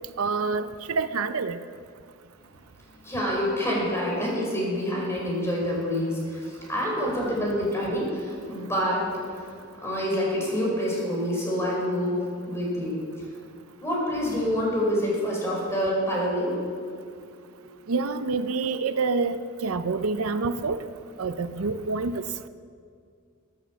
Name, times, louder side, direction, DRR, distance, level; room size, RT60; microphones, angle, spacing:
voice 1, 0.2-1.6 17.9-20.8 21.2-22.2, right 4 dB, 90° right, 11 dB, 0.6 m, -27 dB
voice 2, 3.0-9.1 9.4-9.5 9.8-13.0 13.8-16.6, equal, 15° left, -3 dB, 5.1 m, -27 dB
15.5 x 10.5 x 7.2 m, 2.2 s
head